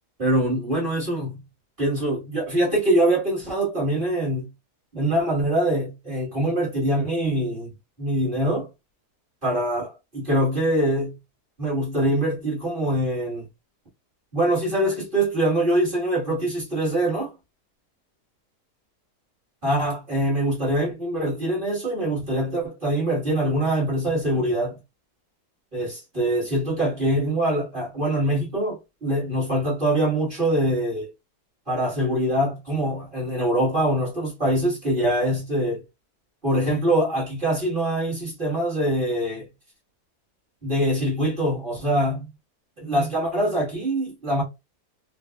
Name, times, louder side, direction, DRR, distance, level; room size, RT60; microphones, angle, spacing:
voice 1, 0.2-1.4 1.8-4.5 4.9-7.7 8.0-8.7 9.4-11.1 11.6-13.5 14.3-17.3 19.6-24.8 25.7-31.1 31.7-35.8 36.4-39.5 40.6-42.3 42.8-44.4, right 1 dB, 30° right, 1.8 m, -24 dB
4.0 x 2.5 x 2.3 m
omnidirectional pair, 1.7 m